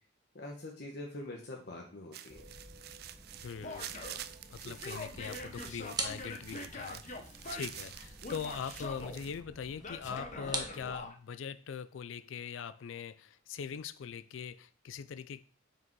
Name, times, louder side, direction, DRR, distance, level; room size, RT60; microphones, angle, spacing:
voice 1, 0.3-2.4, left 1 dB, 60° left, 1.1 m, -44 dB
sound 1, 2.1-9.4, right 11 dB, 55° right, 0.4 m, -48 dB
sound 2, 2.3-11.0, right 3 dB, 20° right, 0.9 m, -45 dB
voice 2, 3.4-7.2 7.5-15.4, left 7 dB, 80° left, 0.4 m, -42 dB
Male speech man speaking / Yell, 3.6-4.2 4.6-7.9 8.2-9.2 9.8-11.1, left 2 dB, 40° left, 0.9 m, -44 dB
6.0 x 5.0 x 4.6 m
head